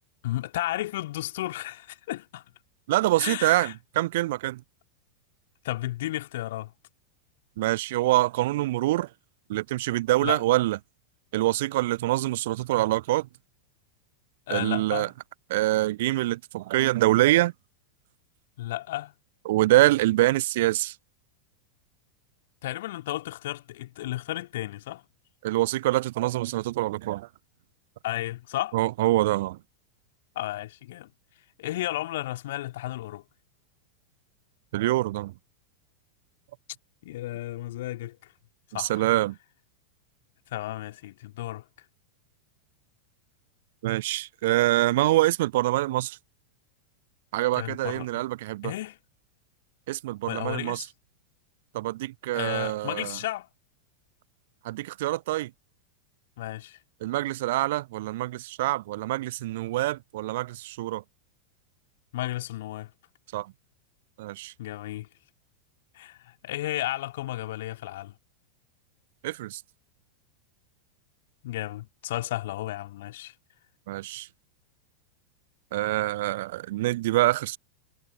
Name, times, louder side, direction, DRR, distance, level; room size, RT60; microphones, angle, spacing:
voice 1, 0.2-2.5 3.2-3.7 5.6-6.7 10.2-10.4 14.5-15.1 18.6-19.1 22.6-25.0 28.0-28.8 30.4-31.1 31.6-33.2 37.0-38.3 38.7-39.1 40.5-41.6 47.6-48.2 48.6-49.0 50.3-50.9 52.3-53.5 56.4-56.8 62.1-62.9 64.6-65.1 66.0-68.1 71.4-73.3, left 15 dB, 55° left, 3.5 m, -33 dB
voice 2, 2.9-4.6 7.6-9.1 9.5-10.8 11.3-13.3 14.5-15.1 15.5-17.5 19.5-20.9 25.4-27.3 28.7-29.6 34.7-35.3 38.8-39.4 43.8-46.2 47.3-48.7 49.9-50.8 51.7-53.1 54.6-55.5 57.0-61.0 63.3-63.5 64.2-64.5 69.2-69.6 73.9-74.3 75.7-77.6, right 17 dB, 55° right, 0.5 m, -25 dB
figure-of-eight pair, 90°, 0 cm